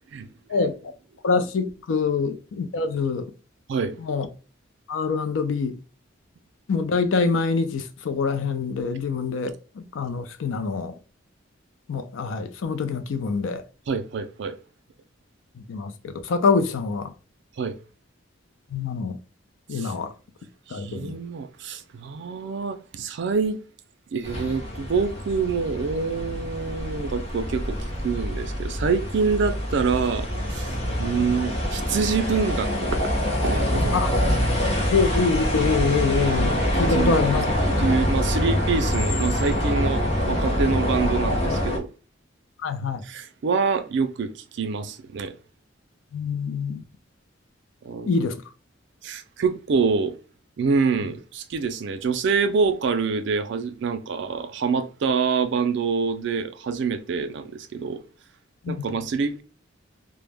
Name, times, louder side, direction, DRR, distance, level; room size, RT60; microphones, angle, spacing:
voice 1, 1.2-3.3 4.0-4.3 4.9-5.8 6.7-11.0 11.9-13.6 15.6-17.1 18.7-19.2 19.7-20.1 20.7-21.2 33.9-34.1 34.9-37.5 42.6-43.0 46.1-46.8 48.1-48.4 58.6-58.9, left 4 dB, 80° left, 0.4 m, -25 dB
voice 2, 13.9-14.6 17.6-17.8 19.7-19.9 20.7-23.6 24.1-27.8 28.0-33.1 33.4-34.0 36.9-37.2 37.7-41.9 43.0-45.4 47.8-48.1 49.0-50.2 50.6-58.0 58.7-59.4, right 5 dB, 65° right, 0.4 m, -26 dB
sound 1, 24.2-41.8, equal, 35° left, 0.6 m, -25 dB
2.1 x 2.1 x 3.2 m
head